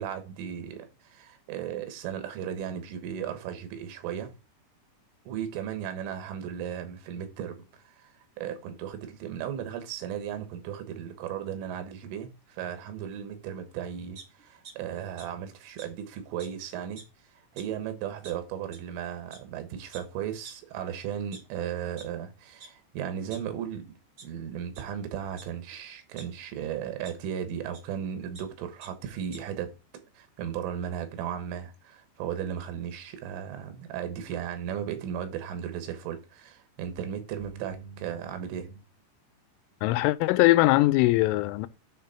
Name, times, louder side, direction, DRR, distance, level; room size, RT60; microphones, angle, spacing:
voice 1, 0.0-4.3 5.3-23.9 24.2-29.7 30.2-38.8, right 9 dB, 90° right, 3.9 m, -36 dB
sound 1, 14.1-14.7 15.2-15.3 15.8-15.9 16.4-16.5 16.8-17.1 17.6-17.7 18.2-18.3 18.7-18.8 19.3-19.4 19.9-20.0 20.4-20.5 21.1-22.0 22.6-22.7 23.0-23.8 24.2-24.3 24.7-24.8 25.4-26.2 27.0-27.1 27.7-27.8 28.1-28.4 28.8-28.9 29.2-29.4, right 4 dB, 55° right, 1.4 m, -47 dB
voice 2, 39.8-41.7, left 19 dB, 90° left, 3.1 m, -21 dB
9.4 x 3.6 x 5.7 m
omnidirectional pair, 5.5 m